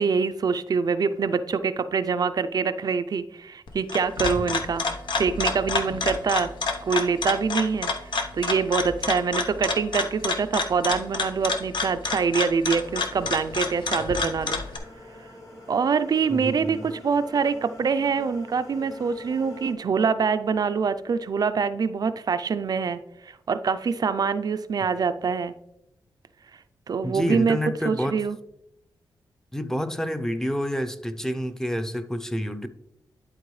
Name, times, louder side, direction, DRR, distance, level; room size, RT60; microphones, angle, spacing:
voice 1, 0.0-4.8 5.1-6.5 6.9-7.9 8.3-14.6 15.7-25.5 26.9-27.6 27.8-28.4, right 5 dB, 50° right, 11 dB, 0.4 m, -25 dB
sound 1, 3.7-14.8, left 4 dB, 70° left, 0.9 m, -29 dB
sound 2, 12.6-19.7, left 1 dB, 45° left, 1.9 m, -45 dB
voice 2, 16.3-16.9 27.0-28.1 29.5-32.7, equal, 5° left, 9 dB, 0.6 m, -28 dB
11.0 x 4.5 x 3.2 m, 0.81 s
wide cardioid pair, 105°, 8 cm